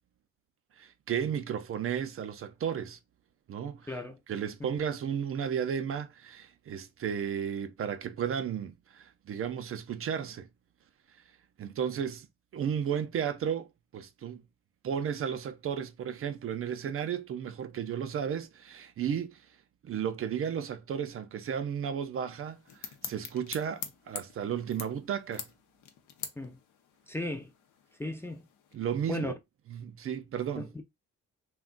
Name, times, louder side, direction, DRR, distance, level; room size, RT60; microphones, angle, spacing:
voice 1, 0.8-3.0 3.5-3.9 4.3-10.5 11.6-12.3 12.5-13.7 13.9-14.4 14.8-19.4 19.8-25.5 28.7-29.4 29.7-30.6, right 8 dB, 45° right, 0.4 m, -34 dB
voice 2, 3.9-4.2 4.6-4.7 26.4-26.6 27.1-27.5 28.0-28.5 29.1-29.3 30.6-30.8, left 2 dB, 10° left, 0.4 m, -35 dB
sound 1, 22.3-28.8, left 8 dB, 90° left, 0.6 m, -45 dB
2.4 x 2.2 x 3.7 m
cardioid pair, 90°, 30 cm